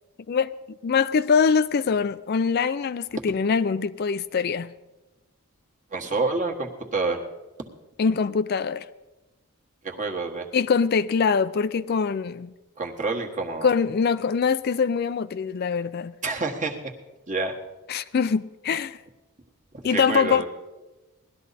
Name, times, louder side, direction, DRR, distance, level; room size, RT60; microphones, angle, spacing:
voice 1, 0.8-4.7 8.0-8.9 10.5-12.5 13.6-16.1 17.9-19.0 19.8-20.5, left 5 dB, 45° left, 0.4 m, -23 dB
voice 2, 5.9-7.2 9.8-10.5 12.8-13.7 16.2-16.9 17.3-17.6 19.7-20.5, right 3 dB, 35° right, 1.4 m, -28 dB
18.5 x 12.5 x 4.1 m
head